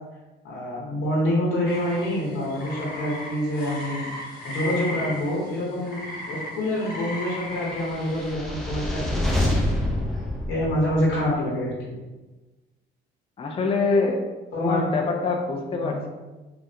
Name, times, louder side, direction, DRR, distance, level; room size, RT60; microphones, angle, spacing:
voice 1, 0.4-6.0 6.2-9.4 10.5-11.7 14.5-14.9 15.8-16.0, left 1 dB, 80° left, -6 dB, 0.9 m, -26 dB
sound 1, 1.7-8.3, left 1 dB, 50° left, 0.8 m, -36 dB
sound 2, 7.8-11.2, left 1 dB, ahead, 0.7 m, -26 dB
voice 2, 13.4-14.2 14.6-16.1, left 4 dB, 30° left, 2 dB, 0.4 m, -24 dB
3.2 x 2.5 x 2.7 m, 1.2 s
cardioid pair, 90°, 20 cm